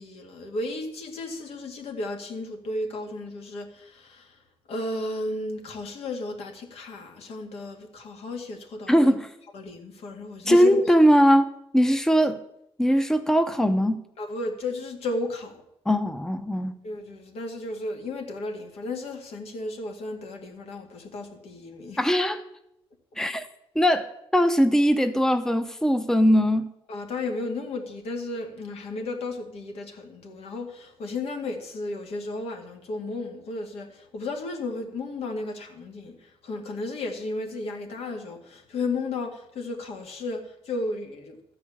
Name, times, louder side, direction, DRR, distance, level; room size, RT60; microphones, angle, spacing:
voice 1, 0.0-4.4 4.7-9.2 9.5-10.9 14.2-15.5 16.8-22.0 26.9-41.4, left 2 dB, 80° left, 2.2 m, -34 dB
voice 2, 8.9-9.3 10.5-12.4 12.8-14.0 15.9-16.8 22.0-22.4 23.2-23.5 23.7-26.7, equal, 5° left, 0.7 m, -20 dB
13.0 x 5.0 x 8.5 m
cardioid pair, 110°, 10 cm